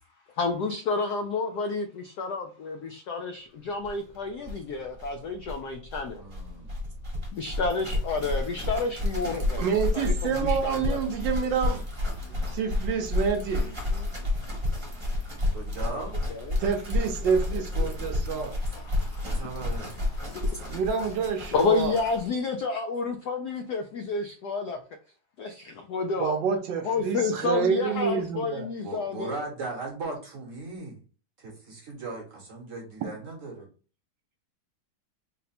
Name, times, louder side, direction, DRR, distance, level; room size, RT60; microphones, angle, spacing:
voice 1, 0.4-6.2 7.3-9.6 9.9-11.0 12.2-12.6 13.7-15.3 16.3-16.6 17.2-19.5 19.9-20.8 21.5-24.8 25.4-26.3 26.8-29.3, left 4 dB, 80° left, 5 dB, 0.9 m, -31 dB
sound 1, 3.8-3.9 4.1-4.2 4.4-22.3, left 2 dB, 20° right, 0.8 m, -31 dB
voice 2, 6.2-6.7 15.5-16.2 19.2-19.9 28.8-31.0 31.4-33.7, right 3 dB, 50° right, 0 dB, 1.0 m, -37 dB
voice 3, 9.6-11.8 12.5-13.7 16.6-18.5 20.7-22.0 26.2-28.7, right 6 dB, 70° right, 5 dB, 1.2 m, -27 dB
4.0 x 2.1 x 4.1 m, 0.37 s
omnidirectional pair, 2.3 m